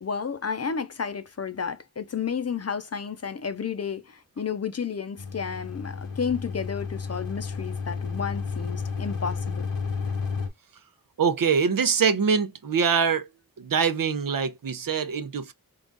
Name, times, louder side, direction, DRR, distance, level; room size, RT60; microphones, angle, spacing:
voice 1, 0.0-9.7, left 6 dB, 40° left, 0.6 m, -32 dB
sound 1, 5.2-10.5, left 5 dB, 65° left, 1.1 m, -32 dB
voice 2, 11.2-13.3 13.6-15.5, right 6 dB, 60° right, 0.7 m, -24 dB
3.8 x 2.4 x 3.8 m
wide cardioid pair, 75°, 37 cm